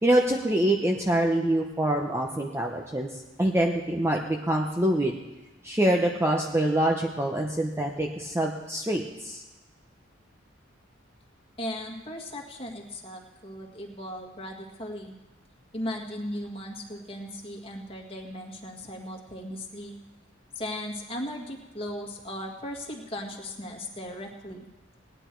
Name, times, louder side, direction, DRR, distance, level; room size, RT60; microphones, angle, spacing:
voice 1, 0.0-3.1 3.4-5.2 5.6-9.4, right 1 dB, 15° right, 1 dB, 0.8 m, -25 dB
voice 2, 11.6-15.1 15.7-19.9 20.6-24.7, left 1 dB, 30° left, 0 dB, 1.9 m, -37 dB
18.5 x 10.0 x 4.6 m, 1.1 s
head